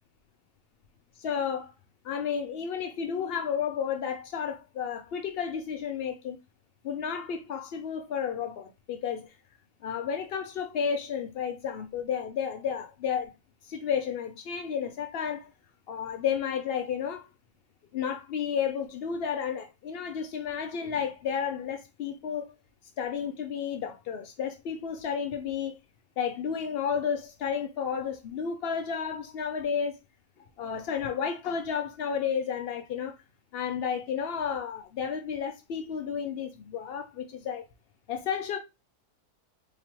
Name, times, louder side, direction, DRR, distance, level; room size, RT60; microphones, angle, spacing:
voice 1, 1.2-1.7 2.0-6.4 6.8-9.3 9.8-13.3 13.6-15.5 15.9-17.3 17.9-22.5 23.0-25.8 26.2-30.0 30.6-33.1 33.5-37.7 38.1-38.6, left 7 dB, 85° left, 0.5 m, -32 dB
4.2 x 2.9 x 2.9 m
omnidirectional pair, 1.6 m